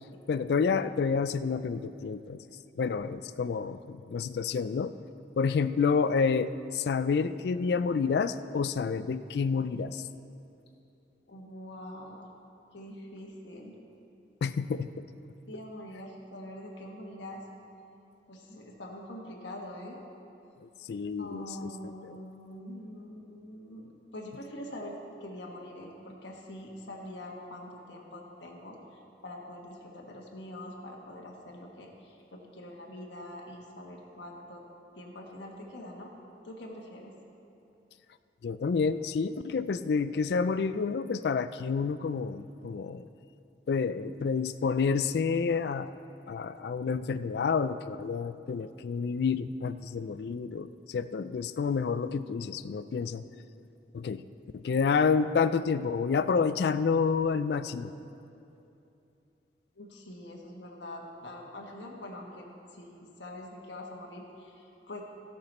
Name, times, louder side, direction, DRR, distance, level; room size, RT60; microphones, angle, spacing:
voice 1, 0.3-2.4 2.8-4.9 5.4-10.0 14.4-14.9 20.6-21.9 38.4-43.1 43.7-45.9 46.3-53.2 53.9-54.2 54.5-57.9, left 5 dB, 65° left, 13 dB, 0.3 m, -29 dB
voice 2, 11.3-12.3 12.7-13.7 15.5-17.4 18.3-20.0 21.2-28.8 29.2-34.6 34.9-36.1 36.4-37.1 59.8-65.0, left 1 dB, 90° left, -1 dB, 1.3 m, -44 dB
16.5 x 6.0 x 4.3 m, 2.8 s
head